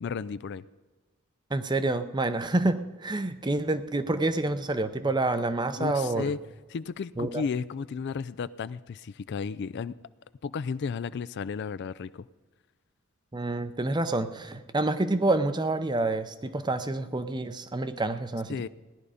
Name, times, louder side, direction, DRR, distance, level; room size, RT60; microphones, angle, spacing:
voice 1, 0.0-0.6 5.8-6.4 6.7-10.0 10.4-12.3 18.5-18.7, left 5 dB, 50° left, 16 dB, 0.4 m, -33 dB
voice 2, 1.5-6.3 7.2-7.4 13.3-18.7, right 2 dB, 20° right, 11 dB, 0.6 m, -28 dB
16.5 x 11.0 x 5.0 m, 1.3 s
head